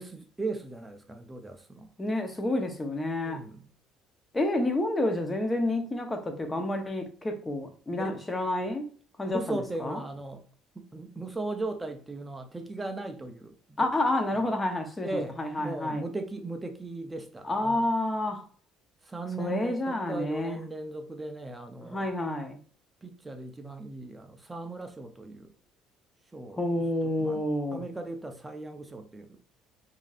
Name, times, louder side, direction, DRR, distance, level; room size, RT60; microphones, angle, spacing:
voice 1, 0.0-1.9 3.2-3.7 8.0-8.2 9.3-10.5 10.7-13.9 14.3-14.4 15.0-17.9 19.0-22.1 23.0-25.5 26.3-27.4 27.7-29.4, right 2 dB, 10° right, 0.6 m, -38 dB
voice 2, 2.0-3.4 4.3-8.9 9.2-10.0 13.8-15.1 15.4-16.1 17.4-18.4 19.4-20.6 21.9-22.6 26.6-27.8, left 1 dB, 15° left, 0.8 m, -29 dB
5.2 x 2.7 x 2.4 m
cardioid pair, 130°, 0 cm